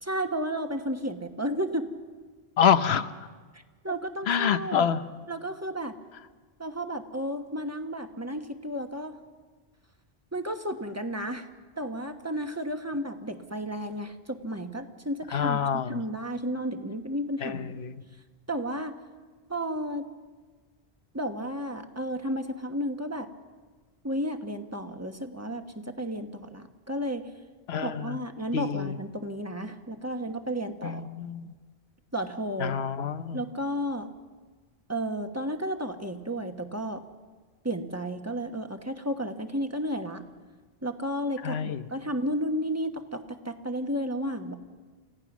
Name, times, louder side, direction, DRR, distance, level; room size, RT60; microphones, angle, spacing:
voice 1, 0.0-1.9 3.5-4.9 5.3-5.9 6.6-9.2 10.3-11.5 11.8-15.6 15.9-17.8 18.5-18.9 19.5-20.1 21.1-23.3 24.0-27.3 27.8-31.1 32.1-32.8 33.3-34.1 34.9-37.0 37.6-40.2 40.8-44.6, equal, 15° right, 6 dB, 1.2 m, -32 dB
voice 2, 2.6-3.1 4.3-5.0 15.3-16.0 17.4-17.9 27.7-28.2 28.5-29.0 30.8-31.5 32.6-33.4 41.4-41.8, left 7 dB, 80° left, 11 dB, 1.1 m, -27 dB
29.0 x 16.5 x 6.1 m, 1.4 s
omnidirectional pair, 1.1 m